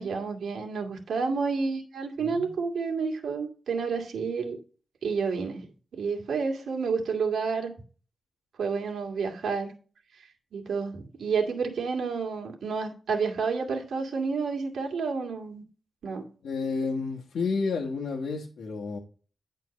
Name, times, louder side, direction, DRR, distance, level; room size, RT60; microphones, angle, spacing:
voice 1, 0.0-4.6 5.0-5.6 5.9-7.7 8.6-9.7 10.5-15.6 16.0-16.2, right 5 dB, 80° right, 1 dB, 2.3 m, -30 dB
voice 2, 2.2-2.5 16.4-19.0, left 4 dB, 80° left, -1 dB, 1.5 m, -31 dB
10.5 x 4.5 x 5.2 m, 0.38 s
wide cardioid pair, 155°, 0 cm